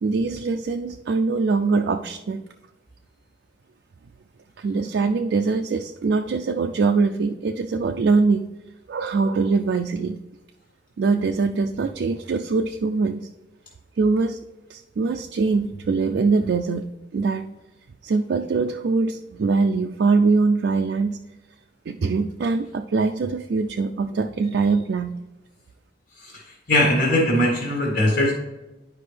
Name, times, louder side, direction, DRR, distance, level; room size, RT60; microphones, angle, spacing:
voice 1, 0.0-2.4 4.6-8.5 8.9-10.2 11.0-13.3 14.0-14.4 14.7-16.9 17.1-17.5 18.0-21.2 21.9-25.1, right 4 dB, 70° right, 5 dB, 0.4 m, -22 dB
voice 2, 26.7-28.3, left 1 dB, 60° left, -2 dB, 1.7 m, -20 dB
10.5 x 5.1 x 3.3 m, 1.1 s
head